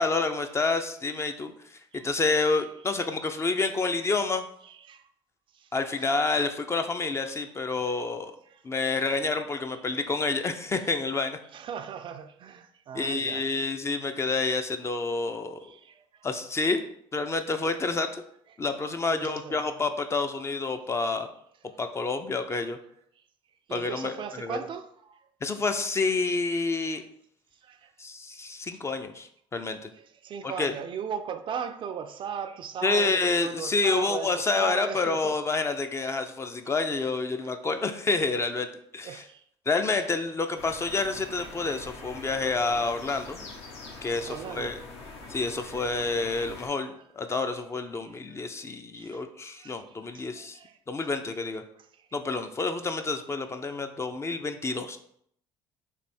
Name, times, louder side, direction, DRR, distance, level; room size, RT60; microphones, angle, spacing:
voice 1, 0.0-4.5 5.7-8.3 8.6-11.4 12.9-15.7 16.2-16.9 17.1-18.2 18.6-21.3 21.8-22.8 23.7-24.6 25.4-27.0 28.0-29.9 30.4-30.7 32.8-38.7 38.9-39.2 39.7-43.5 44.0-44.7 45.3-50.6 50.9-51.6 52.1-55.0, left 3 dB, 25° left, 0.4 m, -28 dB
voice 2, 4.6-5.1 5.5-6.2 7.1-7.3 7.8-8.1 8.5-8.6 9.7-9.8 11.5-13.5 15.6-16.3 19.1-19.9 23.2-23.3 23.7-25.3 26.7-27.0 27.6-27.9 28.3-28.8 29.9-35.4 37.4-37.5 39.0-39.4 43.9-44.8 45.0-45.3 46.0-46.1 46.9-47.0 48.0-49.2 49.5-50.8 51.9-52.1 53.8-53.9, right 7 dB, 45° right, 0.4 m, -39 dB
sound 1, 40.6-46.7, left 3 dB, 65° left, 0.9 m, -44 dB
3.3 x 2.7 x 4.2 m
supercardioid pair, 75°, 12 cm